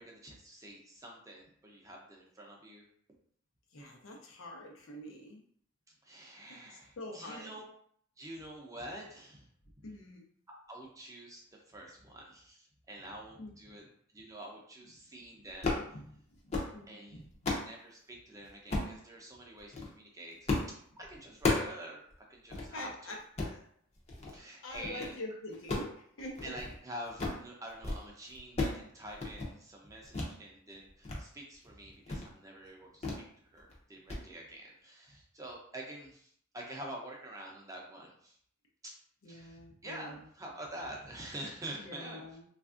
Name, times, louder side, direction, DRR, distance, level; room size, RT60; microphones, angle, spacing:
voice 1, 0.0-2.8 6.0-7.6 8.2-9.5 9.8-9.9 10.7-13.9 14.1-15.8 16.9-17.2 17.6-22.9 24.3-25.2 26.4-33.2 33.5-38.4 38.8-38.9 39.3-42.3, right 1 dB, 15° right, -1 dB, 0.5 m, -47 dB
voice 2, 3.7-5.4 6.5-7.5 9.8-10.2 13.4-13.8 15.7-17.5 22.7-23.7 24.6-26.5 39.2-40.3 41.8-42.4, left 1 dB, 85° left, 0 dB, 0.7 m, -46 dB
sound 1, 15.5-15.9 16.3-16.7 17.1-17.7 18.7-19.0 19.6-19.9 20.5-20.7 21.0-21.8 22.1-22.2 22.5-22.7 23.2-23.6 24.1-24.4 24.7-25.1 25.5-26.8 27.0-27.4 27.7-28.0 28.3-28.8 29.1-29.5 30.1-30.3 30.7-31.2 31.5-31.7 32.1-32.3 33.0-33.3 33.6-33.8 34.1-34.2, left 2 dB, 35° left, 0.6 m, -34 dB
3.3 x 2.4 x 2.4 m, 0.62 s
head